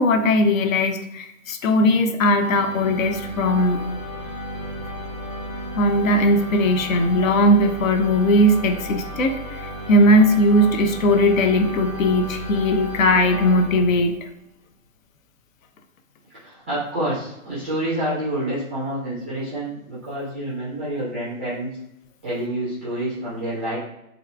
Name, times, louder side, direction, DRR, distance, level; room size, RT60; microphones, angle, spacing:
voice 1, 0.0-3.9 5.8-14.2, left 1 dB, 70° left, 6 dB, 0.6 m, -18 dB
sound 1, 2.4-14.3, left 1 dB, 20° left, 0.8 m, -34 dB
voice 2, 16.4-21.7 22.2-23.8, right 1 dB, 10° right, -11 dB, 0.3 m, -28 dB
2.9 x 2.4 x 2.2 m, 0.83 s
figure-of-eight pair, 125°, 42 cm